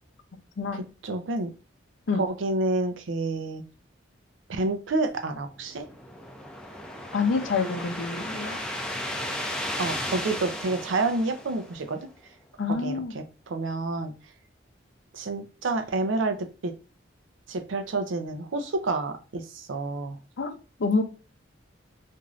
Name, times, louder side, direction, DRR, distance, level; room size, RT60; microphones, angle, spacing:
voice 1, 0.7-1.5 2.1-3.6 4.5-5.8 9.8-12.0 12.7-14.1 15.1-16.7 17.5-20.2, right 2 dB, 85° right, 7 dB, 0.5 m, -29 dB
sound 1, 5.5-12.0, left 1 dB, 5° left, 0.4 m, -35 dB
voice 2, 7.1-8.6 12.6-13.1 20.4-20.5 20.8-21.0, left 4 dB, 80° left, 6 dB, 0.5 m, -26 dB
3.1 x 2.6 x 2.4 m, 0.34 s
head